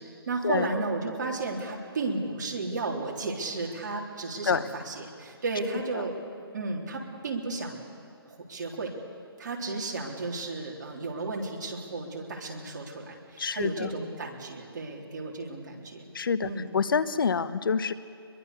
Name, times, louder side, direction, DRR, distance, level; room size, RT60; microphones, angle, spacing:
voice 1, 0.0-6.1 6.5-7.8 8.3-8.9 9.4-16.0 16.4-16.7, right 3 dB, 45° right, -1 dB, 3.6 m, -33 dB
voice 2, 13.4-13.9 16.1-17.9, left 6 dB, 60° left, 15 dB, 0.9 m, -27 dB
23.0 x 22.5 x 6.9 m, 2.5 s
hypercardioid pair, 160°, 13 cm